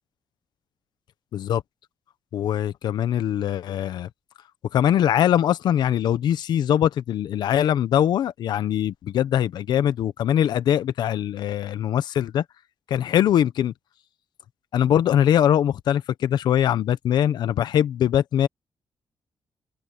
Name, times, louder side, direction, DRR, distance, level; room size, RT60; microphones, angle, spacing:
voice 1, 2.3-4.1 4.7-12.4 12.9-13.7 14.7-18.5, left 10 dB, 85° left, 1.0 m, -22 dB
open air
wide cardioid pair, 155°, 7 cm